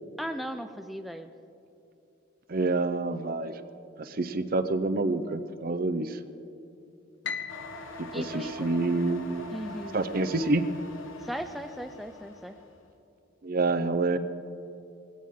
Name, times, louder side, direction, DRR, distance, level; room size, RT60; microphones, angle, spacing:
voice 1, 0.2-1.3 8.1-8.7 9.5-10.0 11.2-12.6, equal, ahead, 6 dB, 0.4 m, -37 dB
voice 2, 2.5-3.5 4.0-6.1 8.1-9.5 9.9-10.6 13.4-14.2, right 3 dB, 45° right, 11 dB, 0.6 m, -27 dB
Piano, 7.2-9.5, left 6 dB, 65° left, 0.8 m, -40 dB
sound 1, 7.5-12.8, left 2 dB, 90° left, 1.3 m, -43 dB
20.5 x 16.0 x 3.7 m, 2.7 s
head